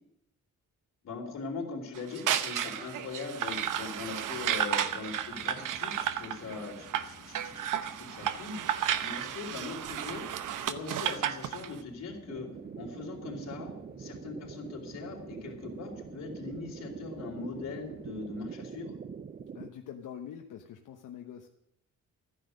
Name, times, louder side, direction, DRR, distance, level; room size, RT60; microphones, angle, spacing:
voice 1, 1.0-10.3 10.6-12.5 12.8-19.0, left 4 dB, 60° left, 0 dB, 3.9 m, -41 dB
sound 1, 1.9-11.7, right 10 dB, 90° right, 0.9 m, -33 dB
sound 2, 3.5-18.4, left 5 dB, 30° left, 1.0 m, -55 dB
sound 3, 12.3-19.7, right 6 dB, 30° right, 0.5 m, -44 dB
voice 2, 19.5-21.5, left 9 dB, 80° left, 3 dB, 1.1 m, -44 dB
14.0 x 10.0 x 6.5 m, 0.78 s
wide cardioid pair, 155°, 31 cm